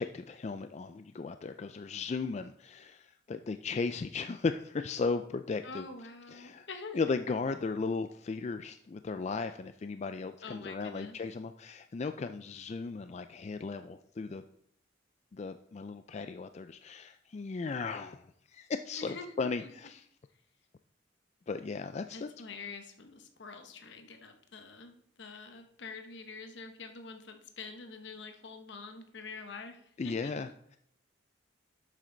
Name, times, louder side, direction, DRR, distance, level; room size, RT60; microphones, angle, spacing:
voice 1, 0.0-5.8 6.3-6.7 6.9-14.4 15.3-20.1 21.5-22.3 30.0-30.8, left 4 dB, 35° left, 9 dB, 0.3 m, -36 dB
voice 2, 5.6-7.0 10.4-11.2 19.0-19.7 22.1-30.3, left 4 dB, 65° left, 6 dB, 1.0 m, -46 dB
11.5 x 7.5 x 3.9 m, 0.70 s
head